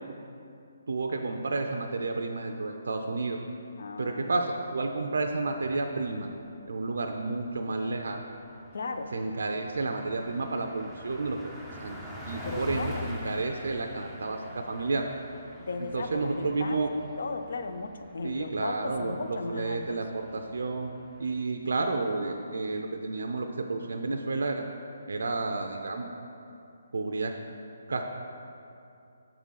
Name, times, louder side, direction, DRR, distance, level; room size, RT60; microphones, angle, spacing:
voice 1, 0.9-3.4 4.0-6.3 6.7-8.2 9.1-11.4 11.8-12.0 12.3-15.1 15.8-16.9 18.2-20.9 21.2-24.6 25.1-26.1 26.9-27.3 27.9-28.0, right 3 dB, 75° right, 3 dB, 0.4 m, -31 dB
voice 2, 3.8-4.3 8.7-9.1 12.4-13.1 15.6-20.0, left 3 dB, 65° left, 8 dB, 0.5 m, -36 dB
Car passing by, 6.4-6.5 6.7-6.9 7.2-21.4, left 1 dB, 5° left, 0.5 m, -45 dB
6.9 x 3.7 x 5.6 m, 2.6 s
hypercardioid pair, 170°, 0 cm